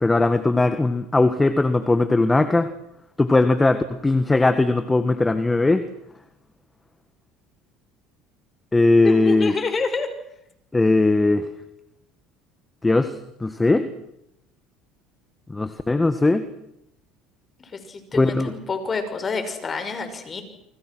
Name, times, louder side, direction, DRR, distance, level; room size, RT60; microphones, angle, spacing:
voice 1, 0.0-2.7 3.2-5.9 8.7-9.5 10.7-11.5 12.8-13.9 15.5-16.5 18.1-18.5, left 2 dB, 15° left, 10 dB, 1.7 m, -19 dB
voice 2, 9.0-10.1 17.7-20.4, left 4 dB, 30° left, 8 dB, 6.1 m, -28 dB
29.0 x 24.5 x 6.3 m, 0.81 s
supercardioid pair, 90°, 0 cm